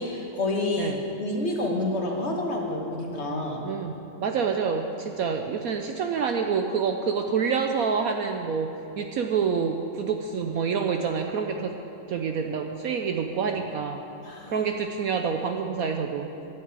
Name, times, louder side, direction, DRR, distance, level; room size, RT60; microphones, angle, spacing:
voice 1, 0.0-3.6 14.2-14.7, left 2 dB, 40° left, 0 dB, 1.7 m, -29 dB
voice 2, 3.6-3.9 4.2-8.7 9.0-11.7 12.1-14.0 14.5-16.3, right 6 dB, 65° right, 4 dB, 1.0 m, -27 dB
12.0 x 8.2 x 8.3 m, 2.9 s
omnidirectional pair, 1.9 m